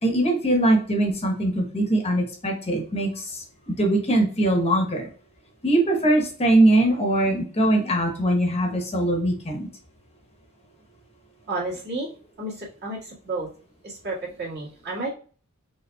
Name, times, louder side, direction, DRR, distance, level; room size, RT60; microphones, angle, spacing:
voice 1, 0.0-5.1 5.6-9.7, right 1 dB, 30° left, 2 dB, 0.9 m, -22 dB
voice 2, 11.5-12.1 12.4-13.5 13.8-15.1, right 2 dB, 50° right, -5 dB, 1.8 m, -31 dB
5.1 x 3.5 x 2.3 m, 0.41 s
head